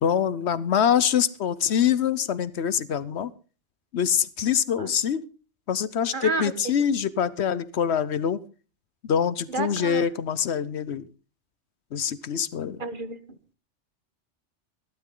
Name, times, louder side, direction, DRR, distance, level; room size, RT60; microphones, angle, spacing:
voice 1, 0.0-3.3 3.9-5.2 5.7-8.4 9.0-11.1 11.9-12.8, left 8 dB, 70° left, 17 dB, 1.0 m, -24 dB
voice 2, 6.1-6.5 9.5-10.0 12.8-13.2, right 3 dB, 45° right, 12 dB, 1.3 m, -30 dB
15.5 x 12.5 x 3.8 m, 0.36 s
omnidirectional pair, 1.2 m